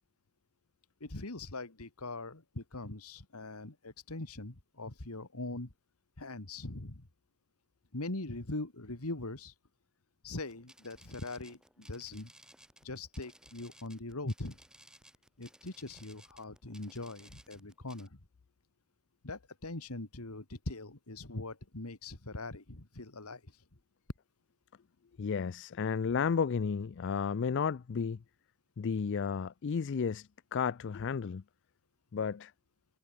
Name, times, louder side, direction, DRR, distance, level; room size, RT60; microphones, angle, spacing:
voice 1, 1.0-5.7 6.2-7.1 7.9-9.5 10.2-12.3 12.8-14.6 15.4-18.2 19.2-23.6, left 2 dB, 80° left, 2.2 m, -41 dB
sound 1, 10.4-18.1, right 1 dB, 5° right, 4.8 m, -59 dB
voice 2, 25.2-28.2 28.8-31.4 32.1-32.5, left 6 dB, 55° left, 0.4 m, -32 dB
head